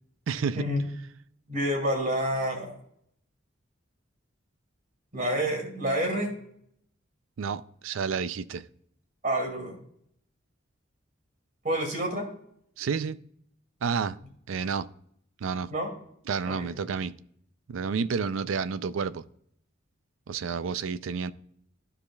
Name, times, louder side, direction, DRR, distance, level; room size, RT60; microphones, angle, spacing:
voice 1, 0.3-0.7 7.4-8.7 12.8-13.2 13.8-14.2 14.5-14.9 15.4-15.7 16.3-17.2 17.7-19.2 20.3-21.3, right 5 dB, 85° right, 0.4 m, -30 dB
voice 2, 1.5-2.7 5.1-6.3 9.2-9.8 11.6-12.3 15.7-15.9 16.4-16.7, right 1 dB, 40° right, 2.3 m, -28 dB
14.5 x 4.9 x 2.3 m
head